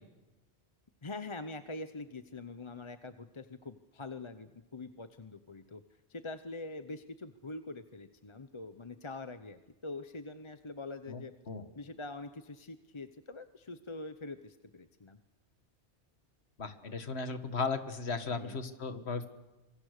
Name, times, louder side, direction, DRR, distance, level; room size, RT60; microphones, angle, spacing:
voice 1, 1.0-5.8 6.1-11.3 11.8-15.2 18.3-18.6, left 3 dB, 30° left, 10 dB, 0.8 m, -44 dB
voice 2, 16.6-19.3, left 4 dB, 65° left, 9 dB, 1.8 m, -36 dB
26.0 x 24.0 x 6.6 m, 1.1 s
omnidirectional pair, 1.2 m